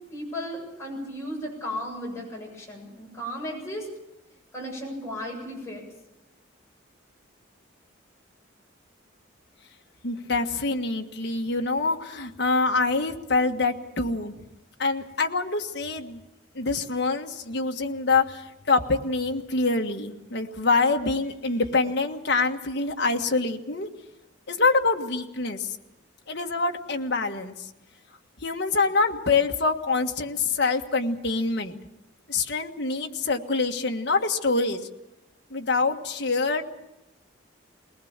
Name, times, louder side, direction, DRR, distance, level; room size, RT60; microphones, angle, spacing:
voice 1, 0.1-3.9 4.5-5.9, equal, 15° left, -2 dB, 7.6 m, -35 dB
voice 2, 10.0-14.4 14.8-16.2 16.5-23.9 24.5-25.8 26.3-27.5 28.4-31.8 32.3-34.8 35.5-36.6, left 3 dB, 55° left, 3 dB, 1.6 m, -25 dB
21.0 x 20.0 x 7.4 m, 0.94 s
head